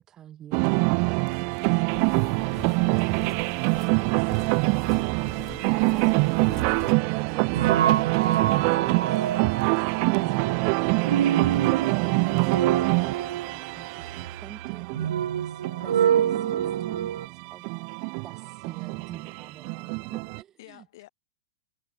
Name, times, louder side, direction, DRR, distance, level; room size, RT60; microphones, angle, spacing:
voice 1, 0.0-2.3 2.9-3.1 3.9-4.7 5.7-14.1 14.4-17.6 18.2-20.8, right 11 dB, 25° right, 3.0 m, -47 dB
sound 1, 0.5-20.4, right 40 dB or more, 40° right, 0.5 m, -25 dB
sound 2, 1.9-6.9, left 11 dB, 25° left, 0.7 m, -45 dB
voice 2, 2.7-3.2 5.5-6.0 19.7-20.1 20.6-21.1, left 17 dB, 55° left, 6.7 m, -53 dB
sound 3, 6.8-17.3, right 9 dB, 80° right, 0.7 m, -28 dB
hypercardioid pair, 140°, 2 cm